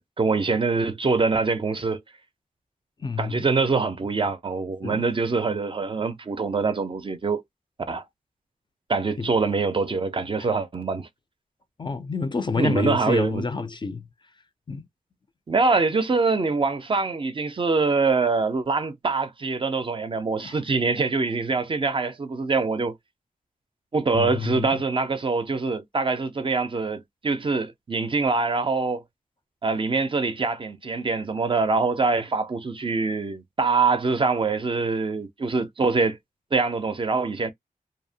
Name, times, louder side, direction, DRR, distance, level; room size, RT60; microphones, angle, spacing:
voice 1, 0.0-2.0 3.2-7.4 7.9-8.0 8.9-11.1 12.6-13.4 15.5-22.9 23.9-29.0 29.6-36.2 36.5-37.5, right 4 dB, 35° right, 0.4 m, -24 dB
voice 2, 3.0-3.5 4.8-5.0 9.2-9.3 10.4-10.5 11.8-14.1 14.7-14.9 20.4-20.6 24.1-24.8, left 4 dB, 30° left, 0.4 m, -28 dB
2.6 x 2.1 x 2.6 m
wide cardioid pair, 120°, 15 cm